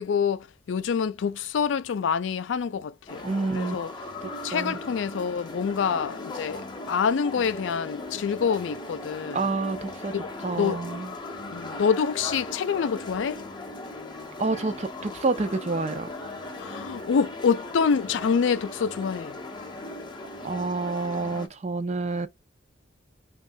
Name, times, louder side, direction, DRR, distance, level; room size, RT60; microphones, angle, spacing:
voice 1, 0.0-3.2 3.5-3.9 4.4-9.5 10.6-10.8 11.5-13.4 16.6-19.4, left 6 dB, 85° left, 0.4 m, -26 dB
sound 1, 3.1-21.5, left 2 dB, 25° left, 0.6 m, -38 dB
voice 2, 3.2-3.8 4.2-4.8 9.3-10.1 10.4-11.1 14.4-16.1 20.4-22.3, right 3 dB, 35° right, 0.5 m, -28 dB
3.1 x 2.4 x 2.6 m
head